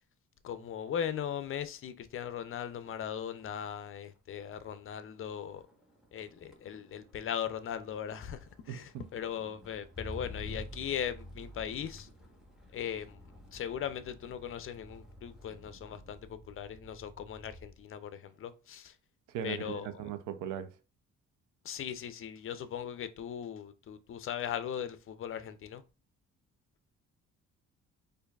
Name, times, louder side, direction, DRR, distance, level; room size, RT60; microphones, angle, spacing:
voice 1, 0.4-5.6 6.1-12.1 12.7-13.2 13.5-19.0 19.4-20.1 21.6-25.8, left 9 dB, 45° left, 0.5 m, -39 dB
Motor vehicle (road), 2.7-3.1 3.4-17.8 18.2-18.7, left 1 dB, ahead, 1.1 m, -50 dB
voice 2, 19.3-20.7, right 10 dB, 85° right, 0.5 m, -38 dB
4.5 x 2.6 x 2.3 m
cardioid pair, 90°, 30 cm